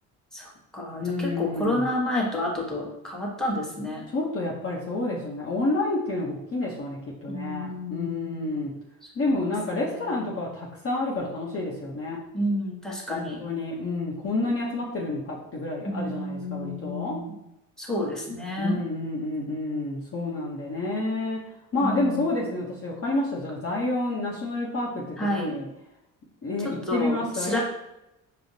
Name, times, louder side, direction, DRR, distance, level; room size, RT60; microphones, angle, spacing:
voice 1, 0.3-4.1 7.3-8.6 9.0-9.4 9.9-10.2 12.3-13.4 15.8-17.4 17.8-18.8 21.8-22.4 25.2-25.6 26.6-27.6, left 1 dB, ahead, -3 dB, 1.1 m, -30 dB
voice 2, 0.9-1.8 4.1-8.7 9.1-12.2 13.1-17.2 18.6-21.4 21.7-25.0 25.3-25.7 26.4-27.6, left 2 dB, 35° left, -4 dB, 0.8 m, -29 dB
4.9 x 2.0 x 2.7 m, 0.89 s
supercardioid pair, 65°, 41 cm